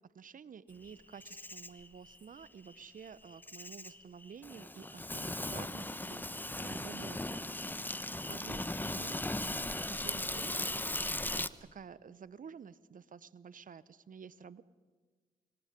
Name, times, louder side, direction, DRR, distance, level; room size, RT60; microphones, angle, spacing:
voice 1, 0.1-7.5 7.8-10.8 11.1-11.4 11.7-14.6, right 7 dB, 55° right, 17 dB, 1.0 m, -51 dB
Insect, 0.8-11.5, left 1 dB, 10° left, 1.1 m, -38 dB
28.5 x 25.0 x 5.4 m, 1.4 s
hypercardioid pair, 40°, 17 cm